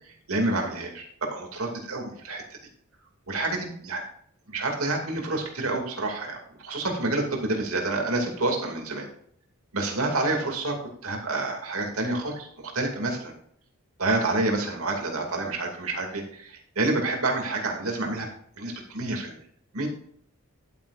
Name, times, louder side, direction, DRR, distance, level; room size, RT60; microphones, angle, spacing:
voice 1, 0.1-2.4 3.3-4.0 4.5-9.1 9.7-13.3 14.0-18.3 18.6-19.4 19.7-19.9, right 2 dB, 85° right, 2 dB, 2.5 m, -28 dB
11.5 x 9.0 x 2.6 m, 0.63 s
head